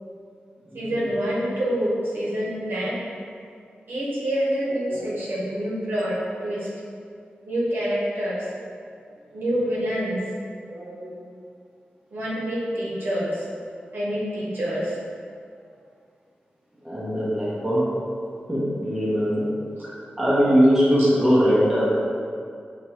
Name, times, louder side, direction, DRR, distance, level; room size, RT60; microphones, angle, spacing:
voice 1, 0.7-2.9 3.9-6.1 6.4-6.7 7.4-8.4 9.3-10.2 12.1-13.4 13.9-14.9 21.0-21.1, equal, 70° right, -7 dB, 1.3 m, -26 dB
voice 2, 4.6-5.0 10.7-11.2 13.2-13.3 16.8-17.9 18.5-19.5 19.8-22.0, equal, 10° right, -9 dB, 1.0 m, -21 dB
5.9 x 3.0 x 3.0 m, 2.3 s
wide cardioid pair, 145°, 4 cm